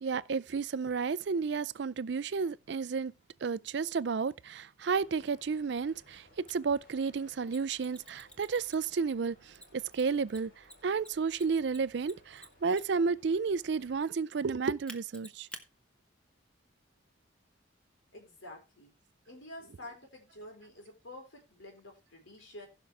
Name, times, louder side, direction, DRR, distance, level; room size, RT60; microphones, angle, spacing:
voice 1, 0.0-3.1 3.4-10.5 10.8-15.5, right 5 dB, 60° right, 0.4 m, -32 dB
sound 1, 5.0-14.0, equal, 50° left, 6.7 m, -62 dB
Mechanisms, 6.5-6.6 7.5-9.0 9.5-13.1 14.9-15.6, equal, 5° left, 1.1 m, -49 dB
voice 2, 18.1-18.9 19.3-22.7, left 1 dB, 75° left, 4.4 m, -49 dB
15.5 x 6.1 x 3.4 m
head